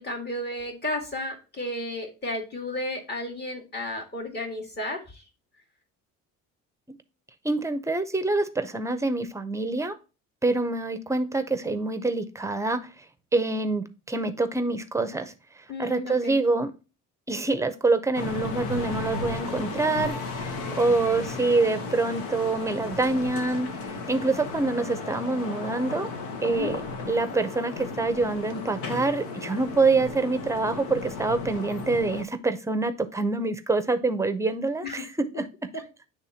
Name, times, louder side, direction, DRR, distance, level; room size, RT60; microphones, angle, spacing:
voice 1, 0.0-5.0 15.7-16.4 26.4-26.7 34.8-35.1, left 1 dB, 35° left, 2 dB, 1.9 m, -33 dB
voice 2, 7.4-10.0 10.4-12.9 13.3-15.3 15.8-16.7 17.3-26.1 26.4-26.8 27.1-35.5 35.7-35.8, right 3 dB, 10° right, 10 dB, 0.6 m, -26 dB
sound 1, 18.1-32.2, left 4 dB, 85° left, 1.2 m, -35 dB
9.8 x 3.5 x 2.8 m, 0.32 s
cardioid pair, 120°, 30 cm